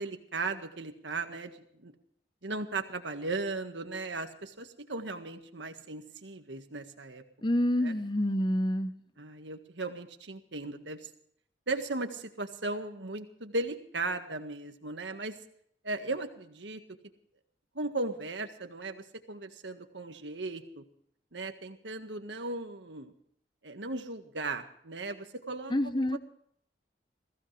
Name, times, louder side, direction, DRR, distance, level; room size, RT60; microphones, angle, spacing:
voice 1, 0.0-1.5 1.8-1.9 2.4-7.2 7.8-7.9 9.2-11.1 11.7-15.3 15.8-16.8 17.8-20.8 21.3-23.1 23.6-26.2, right 3 dB, 90° right, 7 dB, 1.7 m, -37 dB
voice 2, 7.4-8.9 25.7-26.2, left 1 dB, 25° left, 11 dB, 0.9 m, -27 dB
21.5 x 16.0 x 3.4 m, 0.67 s
head